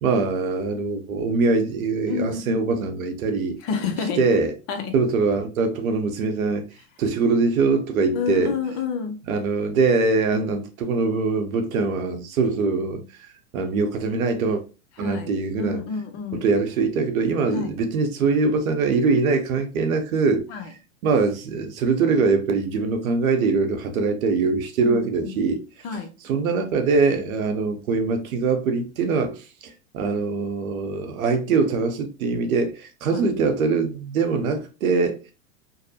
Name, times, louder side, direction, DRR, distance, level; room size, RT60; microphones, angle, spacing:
voice 1, 0.0-3.6 4.2-4.5 4.9-6.7 7.0-8.6 9.3-13.0 13.5-14.6 15.0-15.8 16.4-20.5 21.0-25.6 26.2-35.2, right 4 dB, 80° right, 0.7 m, -23 dB
voice 2, 2.1-2.6 3.6-4.2 4.7-4.9 8.1-9.2 15.0-15.3 15.6-16.4 17.5-17.7 20.5-20.7 24.8-25.6 25.8-26.1 33.1-33.3, left 6 dB, 35° left, 0.4 m, -29 dB
2.6 x 2.0 x 2.7 m
hypercardioid pair, 115°, 42 cm